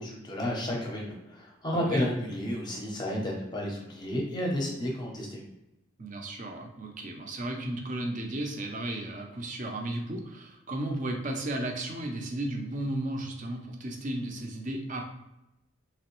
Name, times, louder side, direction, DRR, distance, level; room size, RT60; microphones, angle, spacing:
voice 1, 0.0-5.5, left 1 dB, 20° left, -2 dB, 0.7 m, -32 dB
voice 2, 1.7-2.1 6.0-15.1, right 1 dB, 35° right, 2 dB, 0.5 m, -34 dB
3.3 x 3.0 x 3.0 m, 0.92 s
head